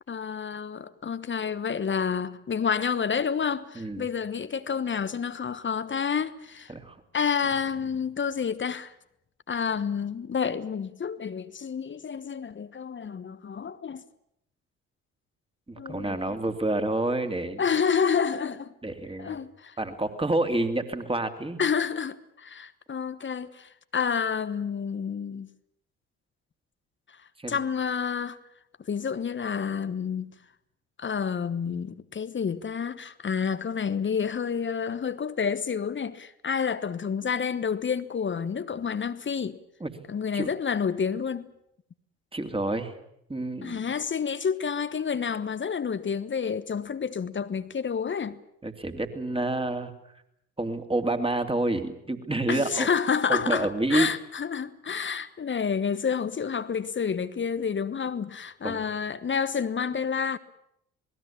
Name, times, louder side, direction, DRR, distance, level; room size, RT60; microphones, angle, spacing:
voice 1, 0.1-6.7 7.1-8.9 9.5-14.0 15.8-16.4 17.6-18.7 19.2-19.7 21.6-25.5 27.5-28.4 28.9-30.3 31.0-39.6 40.1-41.5 43.6-48.4 52.5-60.4, left 6 dB, 30° left, 1.2 m, -29 dB
voice 2, 3.7-4.1 6.7-7.0 15.7-17.6 18.8-19.4 19.8-21.6 27.4-27.6 39.8-39.9 40.3-40.5 42.3-42.9 43.3-43.9 48.6-49.9 50.6-52.9 53.3-54.1 58.6-58.8, right 2 dB, 15° right, 2.9 m, -28 dB
27.5 x 20.0 x 7.3 m
figure-of-eight pair, 45°, 38 cm